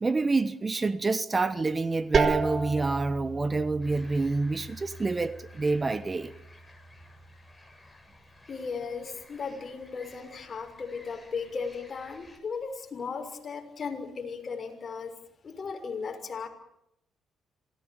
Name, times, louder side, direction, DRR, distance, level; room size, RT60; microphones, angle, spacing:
voice 1, 0.0-6.3, right 3 dB, 25° right, 1.2 m, -27 dB
sound 1, 2.1-7.7, right 4 dB, 45° right, 3.1 m, -33 dB
sound 2, 3.8-12.4, left 2 dB, 10° left, 7.4 m, -55 dB
voice 2, 8.5-15.1 15.4-16.5, left 5 dB, 40° left, 6.5 m, -36 dB
27.0 x 19.5 x 9.0 m
cardioid pair, 90°, 0 cm